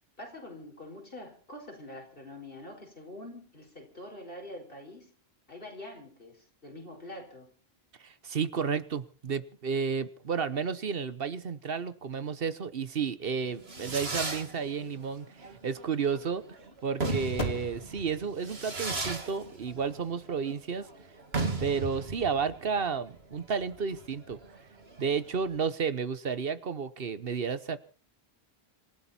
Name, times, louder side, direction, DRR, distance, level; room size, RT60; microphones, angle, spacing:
voice 1, 0.2-5.1 5.5-7.5, left 1 dB, 60° left, 3 dB, 5.2 m, -45 dB
voice 2, 8.0-20.9 21.6-24.4 25.0-27.8, right 6 dB, 65° right, 14 dB, 1.2 m, -32 dB
Fireworks, 13.3-25.5, right 3 dB, 80° right, 2.7 m, -37 dB
sound 1, 17.3-22.0, left 3 dB, 85° left, 2.2 m, -45 dB
27.0 x 12.5 x 4.3 m, 0.40 s
omnidirectional pair, 1.0 m